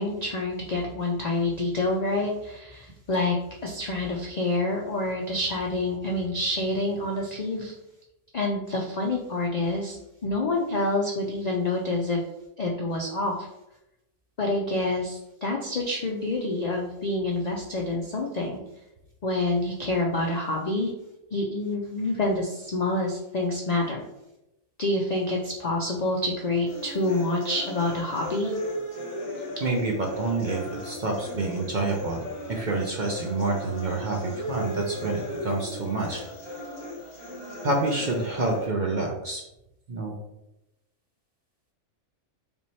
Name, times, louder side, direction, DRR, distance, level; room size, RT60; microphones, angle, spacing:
voice 1, 0.0-3.4 3.6-7.7 8.3-10.0 10.2-12.2 12.6-13.5 14.4-18.6 19.2-20.9 21.3-24.0 24.8-28.5, left 2 dB, 85° left, 0 dB, 0.3 m, -27 dB
sound 1, 26.7-38.7, left 1 dB, 25° left, 1.1 m, -36 dB
voice 2, 29.6-32.2 32.5-36.2 37.6-39.4 39.9-40.2, right 3 dB, 55° right, 0 dB, 0.5 m, -28 dB
3.4 x 3.1 x 4.1 m, 0.89 s
omnidirectional pair, 1.4 m